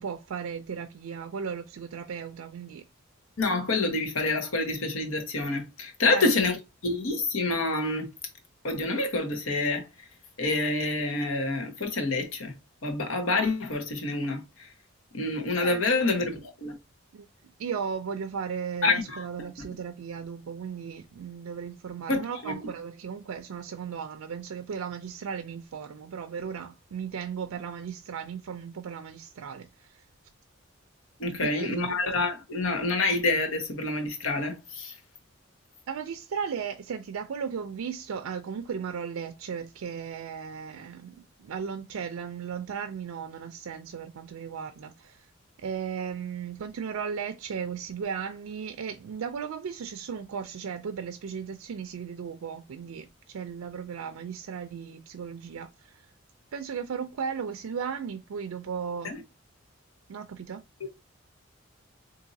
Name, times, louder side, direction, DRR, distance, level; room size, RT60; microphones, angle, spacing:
voice 1, 0.0-2.8 6.1-6.3 15.6-16.2 17.1-17.3 17.6-30.0 31.4-32.0 35.9-45.3 45.6-56.0 56.5-59.1 60.1-60.6, right 6 dB, 85° right, 0.4 m, -36 dB
voice 2, 3.4-6.6 6.8-8.1 8.6-9.9 10.4-12.5 12.8-14.7 15.1-16.7 18.8-19.5 22.1-22.5 31.2-34.9 59.0-59.2, left 3 dB, 75° left, 1.0 m, -27 dB
3.9 x 2.7 x 2.6 m
head